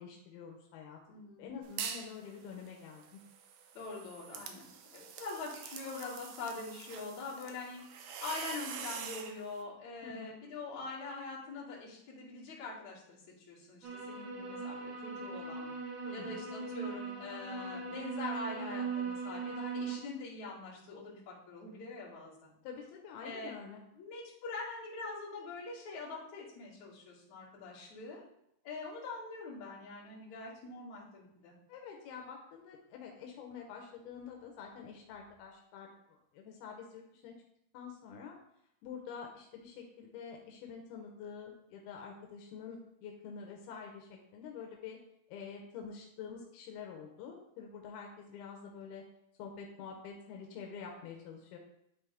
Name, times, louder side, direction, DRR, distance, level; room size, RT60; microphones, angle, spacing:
voice 1, 0.0-1.0 1.4-3.2 10.0-10.3 16.0-16.5 22.6-23.8 31.7-35.9 36.3-37.3 37.7-38.3 38.8-45.0 45.3-49.0 49.4-51.6, left 6 dB, 85° left, 1 dB, 2.7 m, -47 dB
voice 2, 1.1-1.4 3.7-4.7 4.9-13.2 13.5-15.7 16.1-22.5 23.2-23.5 23.9-28.2 28.6-31.5, left 3 dB, 55° left, -8 dB, 3.3 m, -44 dB
sound 1, 1.6-2.1 2.5-9.4, right 7 dB, 80° right, 1.9 m, -45 dB
sound 2, 13.8-20.0, right 4 dB, 60° right, 1.7 m, -39 dB
11.0 x 3.7 x 3.4 m, 0.78 s
omnidirectional pair, 4.3 m